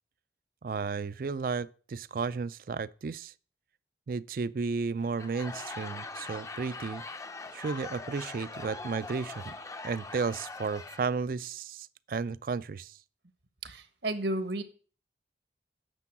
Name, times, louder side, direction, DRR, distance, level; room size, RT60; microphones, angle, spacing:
voice 1, 0.6-3.3 4.1-7.0 7.5-9.5 9.8-13.0, right 4 dB, 50° right, 0.4 m, -33 dB
Laughter / Crowd, 5.0-11.3, left 3 dB, 15° left, 0.5 m, -42 dB
voice 2, 13.6-14.6, right 1 dB, 80° right, 1.3 m, -32 dB
9.7 x 6.9 x 6.0 m
head